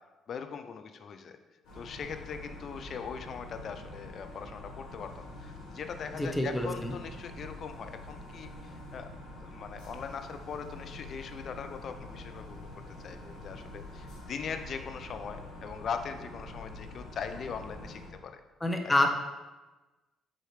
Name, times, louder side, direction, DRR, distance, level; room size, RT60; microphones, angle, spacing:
voice 1, 0.3-1.4 1.7-9.1 9.4-12.7 13.0-18.4 18.8-19.1, left 6 dB, 55° left, 8 dB, 0.6 m, -40 dB
sound 1, 1.6-18.1, left 1 dB, 75° left, 2.2 m, -46 dB
voice 2, 6.2-6.9 18.6-19.1, left 1 dB, 15° left, 3 dB, 1.0 m, -27 dB
7.7 x 4.5 x 3.2 m, 1.2 s
hypercardioid pair, 50°, 0 cm